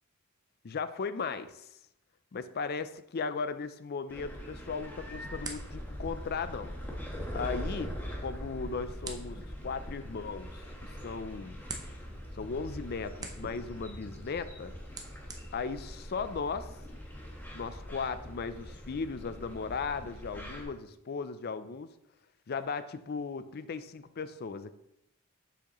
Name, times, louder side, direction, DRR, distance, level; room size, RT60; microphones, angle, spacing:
voice 1, 0.6-1.7 2.3-6.7 7.3-11.6 12.3-14.7 15.5-16.7 17.5-21.9 22.5-24.7, left 5 dB, 50° left, 12 dB, 0.5 m, -37 dB
sound 1, 4.1-20.6, equal, 10° left, 1.2 m, -42 dB
sound 2, 4.5-16.7, right 3 dB, 20° right, 0.7 m, -50 dB
7.1 x 7.1 x 3.0 m, 0.83 s
head